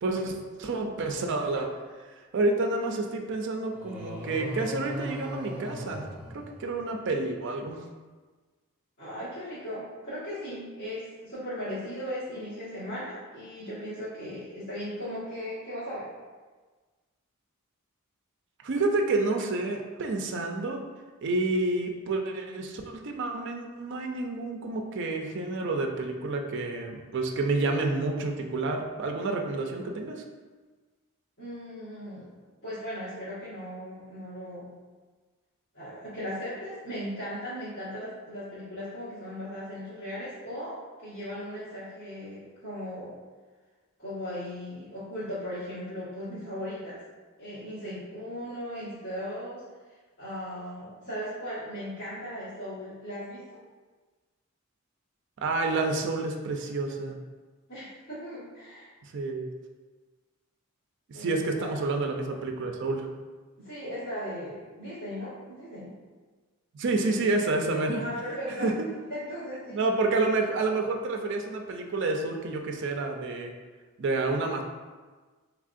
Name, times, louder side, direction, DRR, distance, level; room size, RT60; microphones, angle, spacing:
voice 1, 0.0-1.7 2.1-6.1 6.3-7.8 18.6-20.8 21.2-30.2 55.4-57.2 59.0-59.5 61.1-63.1 66.7-68.0 68.6-68.7 69.7-73.5 74.0-74.6, right 3 dB, 55° right, 3 dB, 0.4 m, -29 dB
sound 1, 3.7-7.1, equal, 5° right, 0.6 m, -38 dB
voice 2, 9.0-16.1 31.4-32.3 32.6-34.8 35.7-43.1 44.0-47.0 47.4-49.6 50.2-53.6 57.7-58.9 61.1-61.8 63.6-65.9 67.7-68.7 69.1-69.8, equal, 50° left, -16 dB, 1.5 m, -37 dB
3.5 x 3.3 x 2.5 m, 1.4 s
head